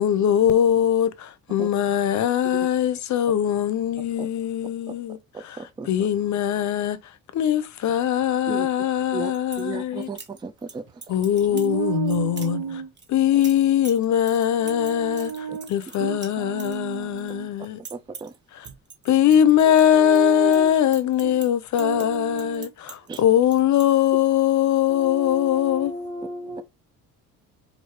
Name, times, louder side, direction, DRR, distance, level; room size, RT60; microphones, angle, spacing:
voice 1, 0.0-5.2 5.5-5.6 5.9-10.1 11.1-12.6 13.1-15.3 15.7-17.8 19.0-26.0, left 10 dB, 55° left, 0.7 m, -21 dB
voice 2, 5.3-5.9 8.5-8.7 9.1-9.3 9.6-11.1 15.5-15.6 16.0-16.1 17.9-18.3 22.0-22.1 23.1-23.2, right 5 dB, 15° right, 0.4 m, -35 dB
sound 1, 9.1-9.7 10.0-10.7 11.0-11.7 12.1-12.5 13.0-17.3 17.6-18.4 18.6-20.2 20.5-23.2 23.5-23.9, right 5 dB, 30° right, 1.1 m, -42 dB
voice 3, 11.5-12.9 14.6-15.7 16.0-17.5 19.6-20.7 21.2-21.4 21.8-22.7 24.9-26.6, right 6 dB, 80° right, 1.3 m, -32 dB
4.6 x 2.7 x 2.9 m
cardioid pair, 95°, 34 cm